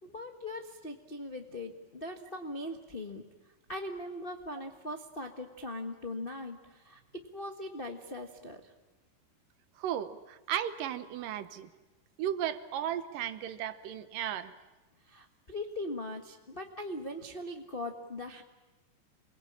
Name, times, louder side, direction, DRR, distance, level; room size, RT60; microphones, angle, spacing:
voice 1, 0.0-3.2 3.7-8.7 15.0-18.4, left 1 dB, 50° left, 4 dB, 0.6 m, -40 dB
voice 2, 9.8-11.7 12.2-14.5, right 10 dB, 80° right, 12 dB, 2.8 m, -35 dB
28.5 x 21.5 x 8.7 m, 1.2 s
omnidirectional pair, 3.9 m